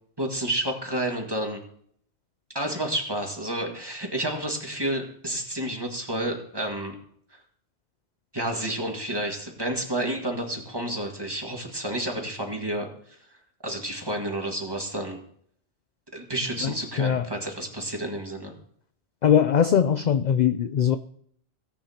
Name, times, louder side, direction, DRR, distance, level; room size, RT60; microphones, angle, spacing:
voice 1, 0.2-1.6 2.5-7.0 8.3-12.9 13.6-15.2 16.1-18.5, right 1 dB, 20° right, 1 dB, 1.8 m, -30 dB
voice 2, 16.6-17.3 19.2-21.0, left 8 dB, 55° left, 11 dB, 0.5 m, -21 dB
18.0 x 8.6 x 2.9 m, 0.64 s
omnidirectional pair, 1.1 m